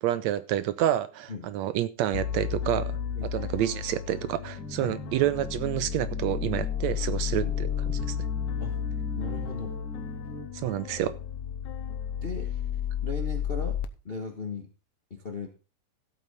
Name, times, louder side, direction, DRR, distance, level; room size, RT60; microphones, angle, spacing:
voice 1, 0.0-2.9 3.3-8.2 10.5-11.2, right 12 dB, 75° right, 1.8 m, -28 dB
sound 1, 2.1-13.9, left 9 dB, 80° left, 2.1 m, -32 dB
sound 2, 4.6-10.5, right 1 dB, ahead, 2.5 m, -42 dB
voice 2, 9.2-9.8 12.2-12.5 13.0-14.7 15.1-15.5, left 3 dB, 40° left, 0.8 m, -37 dB
14.5 x 8.4 x 4.0 m
omnidirectional pair, 3.3 m